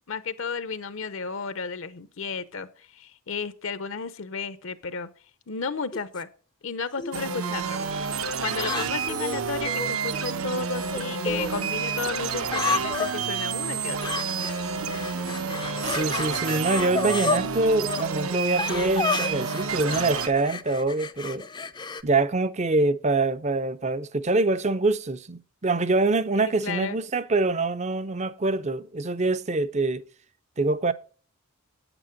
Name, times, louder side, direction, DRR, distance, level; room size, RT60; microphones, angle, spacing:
voice 1, 0.1-5.1 5.5-6.3 6.6-7.8 8.4-14.2 17.3-17.6 26.4-27.0, left 5 dB, 60° left, 0.7 m, -33 dB
sound 1, 5.9-6.2 7.0-7.5 8.5-9.9 10.9-11.5 12.5-13.1 14.0-14.6 14.9-17.4 17.8-18.0 18.6-22.0, left 4 dB, 20° left, 0.5 m, -31 dB
sound 2, 7.1-20.3, right 6 dB, 75° right, 1.0 m, -29 dB
voice 2, 15.8-21.5 22.0-30.0 30.6-30.9, right 3 dB, 30° right, 0.6 m, -25 dB
9.0 x 8.9 x 5.2 m
head